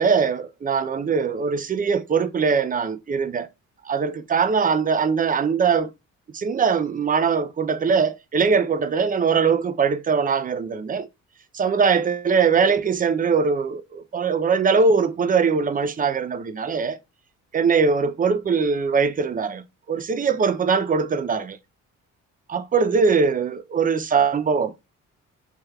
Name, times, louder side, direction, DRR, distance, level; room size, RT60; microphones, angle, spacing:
voice 1, 0.0-3.5 3.9-5.9 6.3-11.1 11.5-17.0 17.5-21.6 22.5-24.7, right 5 dB, 30° right, 0.4 m, -21 dB
3.2 x 3.2 x 2.2 m
cardioid pair, 90°, 30 cm